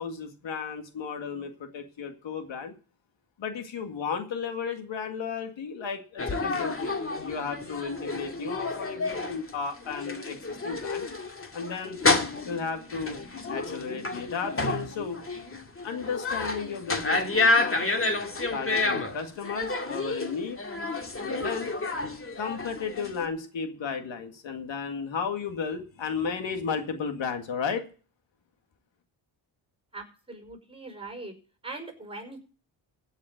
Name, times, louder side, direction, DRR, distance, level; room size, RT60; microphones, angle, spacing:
voice 1, 0.0-2.7 3.4-11.1 11.5-12.0 12.4-13.2 13.5-15.2 15.8-18.2 18.5-20.6 21.2-21.7 22.4-27.9, left 6 dB, 70° left, 6 dB, 2.1 m, -34 dB
sound 1, 6.2-23.3, left 3 dB, 25° left, 2.2 m, -30 dB
voice 2, 29.9-31.3 31.6-32.4, right 3 dB, 10° right, 5 dB, 5.1 m, -41 dB
16.0 x 5.7 x 7.7 m, 0.38 s
cardioid pair, 70°, 47 cm